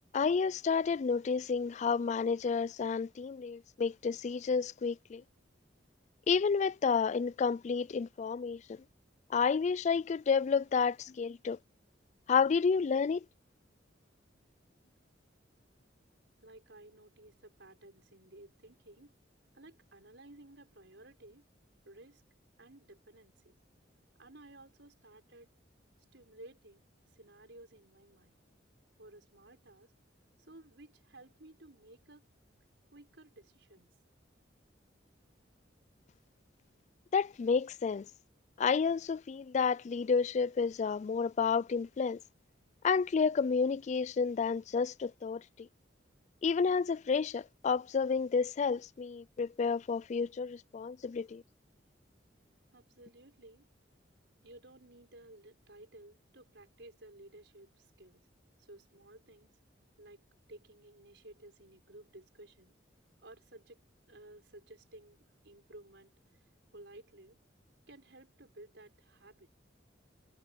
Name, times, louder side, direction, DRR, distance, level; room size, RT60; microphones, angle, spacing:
voice 1, 0.1-5.2 6.3-8.6 9.3-11.6 12.3-13.2 37.1-38.1 38.6-42.2 42.8-45.7 46.4-51.4, left 5 dB, 40° left, 0.3 m, -30 dB
voice 2, 16.4-19.1 19.5-21.5 21.9-22.2 22.6-23.6 24.2-25.5 26.1-28.4 29.0-29.9 30.4-32.3 32.9-33.9 52.7-53.7 54.4-58.3 58.6-59.6 60.0-62.8 63.2-66.1 66.7-67.4 67.9-69.5, right 1 dB, 70° right, 5.5 m, -55 dB
head